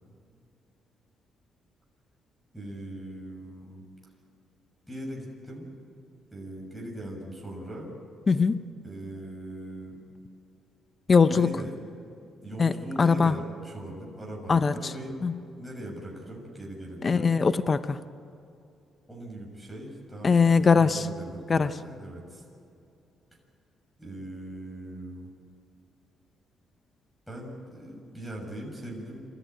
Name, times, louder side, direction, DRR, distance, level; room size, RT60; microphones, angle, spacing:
voice 1, 2.5-3.8 4.9-5.8 6.3-7.9 8.8-10.0 11.3-11.7 12.4-15.2 15.6-17.3 19.1-22.4 24.0-25.3 27.3-29.3, right 1 dB, ahead, -3 dB, 6.6 m, -40 dB
voice 2, 8.3-8.6 11.1-11.5 12.6-12.7 13.0-13.3 14.5-14.7 15.2-15.3 17.0-18.0 20.2-21.0 21.5-21.7, left 5 dB, 35° left, 13 dB, 0.8 m, -21 dB
27.0 x 14.5 x 9.3 m, 2.6 s
cardioid pair, 90°, 0 cm